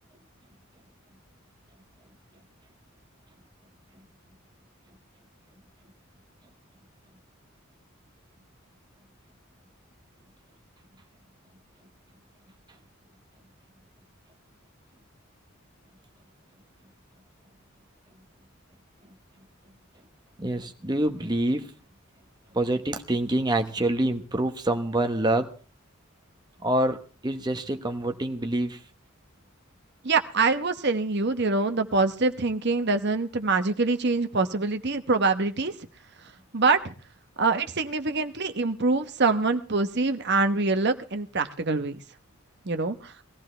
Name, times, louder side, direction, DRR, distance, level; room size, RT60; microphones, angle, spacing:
voice 1, 20.4-21.7 22.5-25.5 26.6-27.0 27.2-28.9, right 1 dB, 20° right, 6 dB, 1.1 m, -26 dB
voice 2, 30.0-35.8 36.5-36.9 37.4-42.0 42.7-43.1, right 3 dB, 50° right, 8 dB, 1.0 m, -25 dB
20.0 x 15.0 x 3.3 m, 0.37 s
head